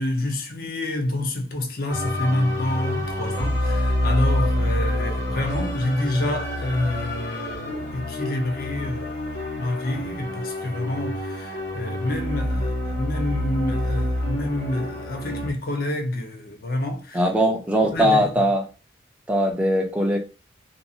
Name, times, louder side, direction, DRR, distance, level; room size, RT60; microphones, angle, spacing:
voice 1, 0.0-17.2 17.8-18.3, left 1 dB, 50° left, 0.5 m, -28 dB
sound 1, 1.9-15.5, left 1 dB, 70° left, 1.2 m, -27 dB
voice 2, 17.1-18.6 19.3-20.2, equal, 5° right, 0.4 m, -20 dB
2.6 x 2.3 x 2.7 m
head